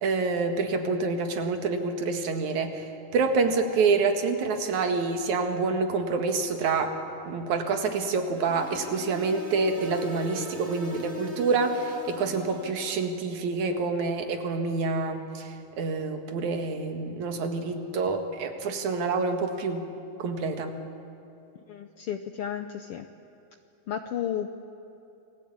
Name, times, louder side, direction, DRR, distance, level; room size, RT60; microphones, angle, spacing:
voice 1, 0.0-7.0 7.2-19.9 20.2-20.8, right 4 dB, 80° right, 6 dB, 3.2 m, -27 dB
sound 1, 8.3-13.1, equal, 25° right, 3.3 m, -41 dB
voice 2, 21.7-23.1 23.9-24.5, left 9 dB, 65° left, 7 dB, 1.6 m, -33 dB
29.0 x 20.0 x 8.8 m, 2.9 s
omnidirectional pair, 3.3 m